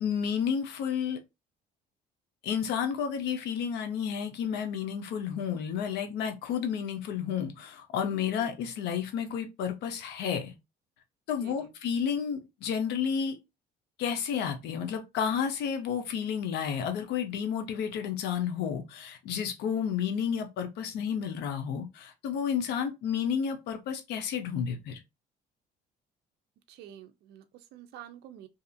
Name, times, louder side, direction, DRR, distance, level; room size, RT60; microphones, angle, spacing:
voice 1, 0.0-1.2 2.4-10.5 11.3-13.4 14.0-25.0, left 7 dB, 80° left, 0.7 m, -31 dB
voice 2, 11.4-11.7 26.7-28.5, right 11 dB, 75° right, 0.4 m, -49 dB
2.7 x 2.4 x 2.6 m
cardioid pair, 110°, 17 cm